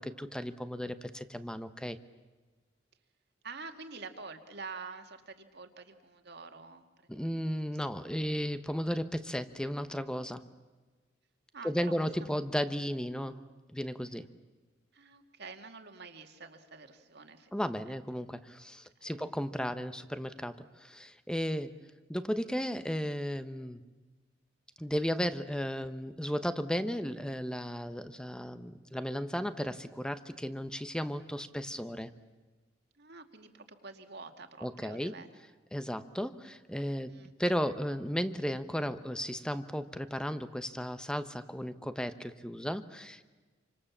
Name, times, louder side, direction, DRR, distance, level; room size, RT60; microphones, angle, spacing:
voice 1, 0.0-2.0 7.1-10.4 11.6-13.4 13.7-14.3 17.5-21.8 22.1-23.8 24.8-32.1 34.6-35.2 35.7-43.2, equal, 5° left, 11 dB, 1.1 m, -35 dB
voice 2, 3.4-8.1 11.5-11.9 12.2-12.4 14.9-17.5 17.9-18.0 19.0-19.3 21.5-21.7 32.9-35.3 37.1-37.3, right 4 dB, 60° right, 6 dB, 2.3 m, -48 dB
28.0 x 25.5 x 7.4 m, 1.3 s
head